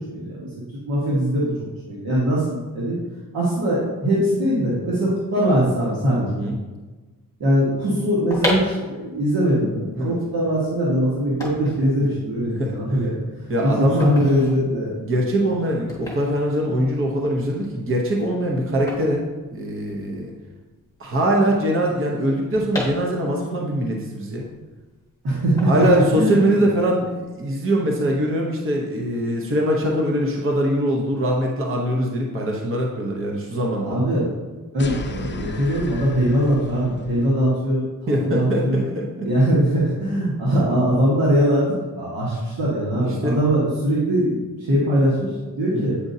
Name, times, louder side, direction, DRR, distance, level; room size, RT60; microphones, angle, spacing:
voice 1, 0.1-0.5 0.9-1.4 1.9-3.0 3.3-6.3 7.4-13.2 13.6-15.0 25.2-25.7 26.1-26.4 33.8-34.3 34.7-38.8 39.2-45.9, equal, 75° right, -7 dB, 1.6 m, -21 dB
sound 1, 8.0-20.2 20.4-20.5 20.7-23.6 24.0-25.0 25.6-26.6 26.9-27.2, left 1 dB, 10° left, 2.0 m, -34 dB
voice 2, 13.5-14.1 15.0-19.2 19.5-20.3 21.0-24.5 25.7-34.0 38.1-39.3 43.1-43.4 45.7-46.0, right 1 dB, 35° right, 0 dB, 0.9 m, -22 dB
sound 2, 34.8-37.4, left 4 dB, 30° left, 0.5 m, -35 dB
8.6 x 5.2 x 2.7 m, 1.2 s
wide cardioid pair, 145°, 36 cm